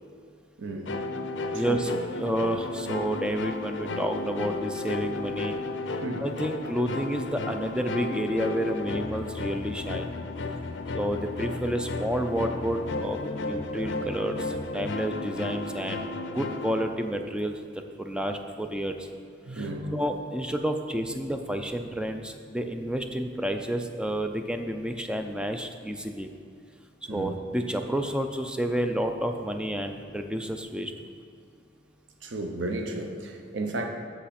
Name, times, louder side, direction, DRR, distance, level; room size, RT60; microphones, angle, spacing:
voice 1, 0.6-1.0 1.5-1.8 6.0-6.3 19.5-20.1 27.1-27.4 32.2-33.9, right 2 dB, 70° right, 3 dB, 0.8 m, -33 dB
sound 1, 0.9-16.8, left 2 dB, 70° left, 0.5 m, -33 dB
voice 2, 1.5-5.6 5.9-10.1 10.9-16.0 16.3-19.1 19.5-26.3 27.1-30.9, equal, 5° right, 6 dB, 0.4 m, -30 dB
8.2 x 6.1 x 4.2 m, 2.4 s
head